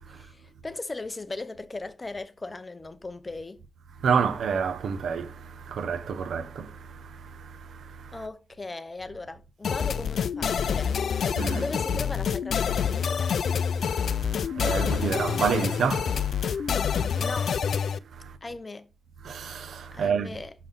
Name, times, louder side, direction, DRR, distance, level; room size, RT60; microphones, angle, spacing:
voice 1, 0.1-3.6 8.1-11.0 11.5-13.3 17.2-17.6 18.4-18.9 19.9-20.5, left 3 dB, 20° left, 0.6 m, -38 dB
voice 2, 4.0-8.2 11.4-11.6 13.8-17.2 18.1-18.4 19.2-20.4, right 6 dB, 85° right, 0.7 m, -30 dB
sound 1, 9.6-18.0, left 7 dB, 70° left, 0.3 m, -27 dB
5.9 x 5.4 x 4.0 m
wide cardioid pair, 165°, 0 cm